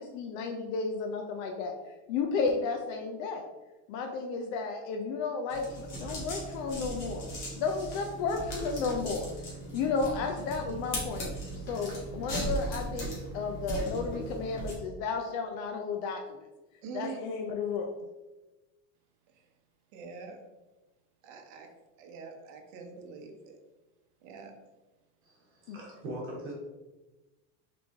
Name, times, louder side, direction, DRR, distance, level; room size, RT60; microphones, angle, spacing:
voice 1, 0.0-1.7 2.1-3.4 3.9-7.2 7.5-9.3 9.7-11.3 11.7-16.4 16.9-17.9 25.7-25.8, left 4 dB, 75° left, 3 dB, 0.6 m, -33 dB
sound 1, 5.5-14.7, right 1 dB, 40° left, 1.4 m, -38 dB
voice 2, 16.8-17.2 19.3-19.4 19.9-20.4 21.2-21.7 22.0-23.6 24.2-24.5, right 5 dB, 75° right, 4 dB, 0.9 m, -44 dB
voice 3, 25.2-26.5, right 1 dB, 30° right, -3 dB, 1.0 m, -41 dB
3.9 x 3.2 x 3.4 m, 1.1 s
cardioid pair, 170°, 40 cm